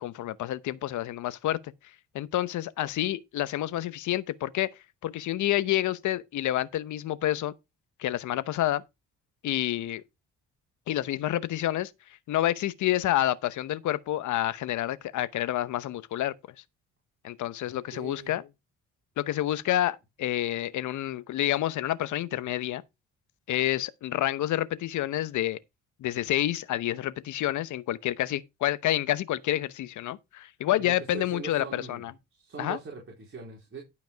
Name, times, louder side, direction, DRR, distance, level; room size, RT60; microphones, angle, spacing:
voice 1, 0.0-1.7 2.1-4.7 5.0-7.5 8.0-8.8 9.4-10.0 10.9-11.9 12.3-16.3 17.2-18.4 19.2-22.8 23.5-25.6 26.0-32.1 32.6-32.8, left 13 dB, 75° left, 0.9 m, -28 dB
voice 2, 17.6-18.3 30.8-33.8, right 5 dB, 45° right, 4.1 m, -42 dB
12.0 x 5.2 x 4.5 m
cardioid pair, 90°, 30 cm